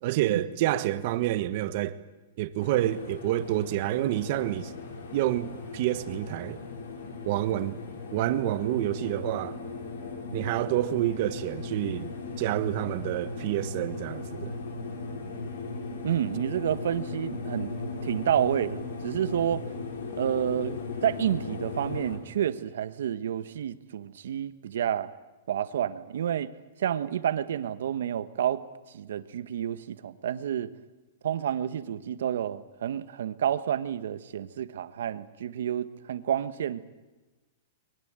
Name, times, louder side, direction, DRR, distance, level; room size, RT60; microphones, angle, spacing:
voice 1, 0.0-1.9 2.4-4.7 5.1-6.6 7.2-7.8 8.1-9.6 10.3-14.5, right 14 dB, 45° right, 1.3 m, -28 dB
sound 1, 2.6-22.2, left 3 dB, 85° left, 5.9 m, -38 dB
voice 2, 16.0-17.7 18.0-19.6 20.2-25.1 25.5-26.5 26.8-28.6 28.9-30.7 31.2-36.8, right 10 dB, 75° right, 1.4 m, -29 dB
23.0 x 22.0 x 9.0 m
supercardioid pair, 165°, 0 cm